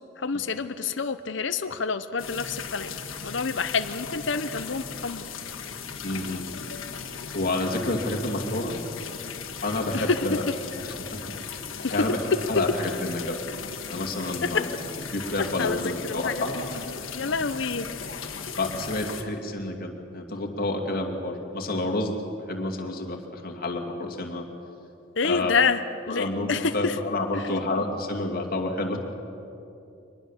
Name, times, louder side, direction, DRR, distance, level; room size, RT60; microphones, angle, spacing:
voice 1, 0.2-2.9 3.2-5.3 9.9-10.3 11.8-11.9 15.4-17.9 25.2-27.0 27.3-27.6, left 5 dB, 65° left, 9 dB, 0.8 m, -28 dB
sound 1, 2.2-19.2, left 6 dB, 80° left, 1.8 m, -37 dB
voice 2, 6.0-6.5 7.3-8.8 9.6-10.4 10.8-11.4 11.9-12.2 12.5-13.4 13.9-14.8 15.1-16.6 18.6-22.1 22.5-24.5 25.2-25.5 26.1-29.0, left 2 dB, 45° left, 3 dB, 2.5 m, -29 dB
24.0 x 20.0 x 7.3 m, 2.8 s
head